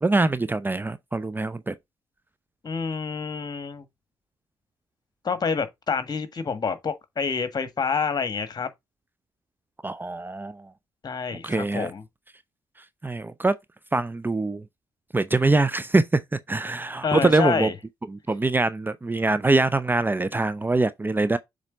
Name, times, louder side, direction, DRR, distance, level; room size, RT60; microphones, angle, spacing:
voice 1, 0.0-1.7 9.8-10.7 11.4-11.9 13.0-13.6 13.9-14.6 15.1-17.7 18.1-21.4, right 2 dB, 15° right, 0.6 m, -23 dB
voice 2, 2.6-3.8 5.2-8.7 11.0-12.0 17.0-17.7, left 5 dB, 35° left, 1.6 m, -28 dB
7.3 x 4.0 x 3.6 m
figure-of-eight pair, 45°, 11 cm